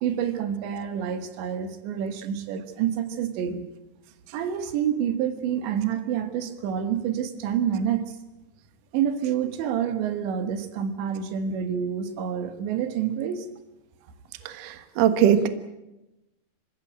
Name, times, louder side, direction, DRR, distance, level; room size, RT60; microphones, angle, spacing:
voice 1, 0.0-3.7 4.3-8.2 8.9-13.5, right 8 dB, 85° right, 9 dB, 3.9 m, -28 dB
voice 2, 14.6-15.5, right 9 dB, 60° right, 10 dB, 2.6 m, -20 dB
27.0 x 16.0 x 8.9 m, 0.95 s
omnidirectional pair, 5.0 m